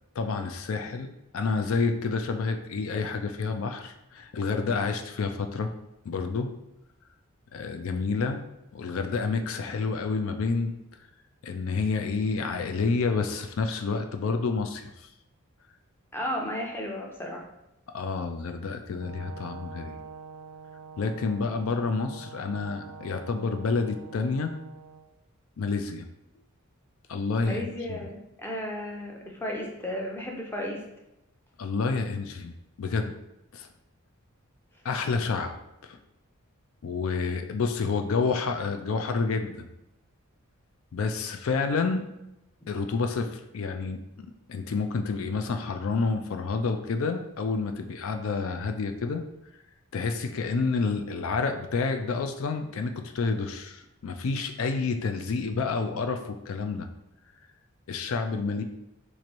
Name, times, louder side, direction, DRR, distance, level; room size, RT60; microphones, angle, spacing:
voice 1, 0.2-1.1 1.3-5.7 6.0-6.5 7.5-8.4 8.7-10.7 11.4-15.1 17.9-20.0 21.0-24.5 25.6-26.1 27.1-27.6 27.9-28.0 31.6-33.1 33.5-33.7 34.8-35.5 35.8-36.0 36.8-39.7 40.9-42.1 42.7-44.0 44.5-49.2 49.9-56.9 57.9-58.6, left 4 dB, 70° left, 6 dB, 0.4 m, -29 dB
voice 2, 16.1-17.4 27.4-30.8 42.6-42.7, equal, 10° left, -1 dB, 0.5 m, -34 dB
Brass instrument, 18.9-25.1, right 6 dB, 75° right, 0.4 m, -46 dB
3.1 x 2.5 x 4.1 m, 0.89 s
head